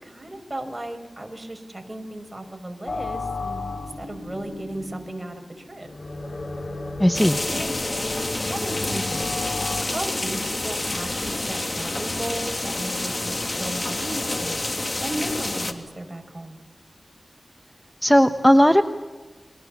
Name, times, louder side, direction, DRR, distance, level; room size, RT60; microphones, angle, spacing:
voice 1, 0.0-3.6 4.0-5.4 5.7-5.9 7.5-7.8 8.3-9.3 9.8-14.6 15.0-16.6, right 1 dB, 20° right, 5 dB, 5.3 m, -35 dB
sound 1, 2.9-9.8, left 3 dB, 85° left, 4.9 m, -34 dB
voice 2, 7.0-7.4 18.0-18.8, equal, 5° left, 8 dB, 1.1 m, -16 dB
sound 2, 7.1-15.7, left 2 dB, 40° left, 2.9 m, -28 dB
30.0 x 24.0 x 7.2 m, 1.4 s
wide cardioid pair, 65°, 0 cm